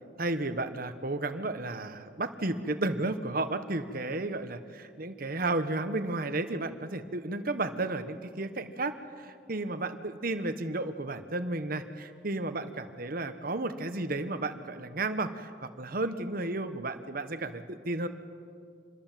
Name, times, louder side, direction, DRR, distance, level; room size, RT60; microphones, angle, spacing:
voice 1, 0.2-18.1, right 2 dB, 50° right, 9 dB, 1.1 m, -33 dB
26.5 x 21.0 x 7.5 m, 2.4 s
head